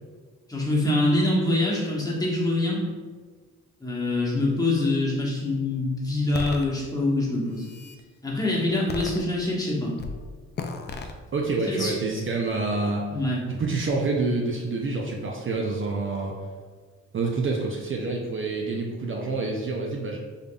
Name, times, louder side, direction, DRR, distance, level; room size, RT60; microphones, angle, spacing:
voice 1, 0.5-2.8 3.8-7.7 8.2-10.0 11.7-11.9 13.1-13.4, left 2 dB, 10° left, -5 dB, 1.1 m, -25 dB
sound 1, 6.3-6.7 7.3-8.0 8.9-9.6 10.0-10.2 10.6-11.1, left 3 dB, 35° left, 0.4 m, -34 dB
voice 2, 11.3-13.1 13.5-16.3 17.1-20.2, right 3 dB, 45° right, -1 dB, 0.5 m, -27 dB
3.7 x 3.5 x 2.3 m, 1.5 s
cardioid pair, 70°, 30 cm